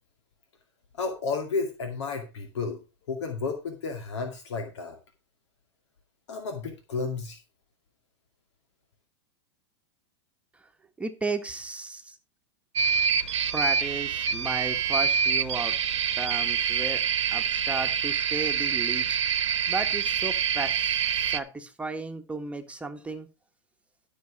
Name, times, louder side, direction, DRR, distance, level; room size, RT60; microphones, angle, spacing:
voice 1, 0.9-2.8 3.1-5.0 6.3-7.4, left 4 dB, 75° left, 5 dB, 2.2 m, -32 dB
voice 2, 11.0-12.2 13.5-15.7 16.2-17.0 17.3-19.2 19.7-23.3, right 3 dB, 10° right, 6 dB, 1.5 m, -34 dB
sound 1, 12.8-21.4, right 7 dB, 85° right, 1.0 m, -26 dB
12.5 x 6.4 x 4.8 m, 0.29 s
hypercardioid pair, 115°, 15 cm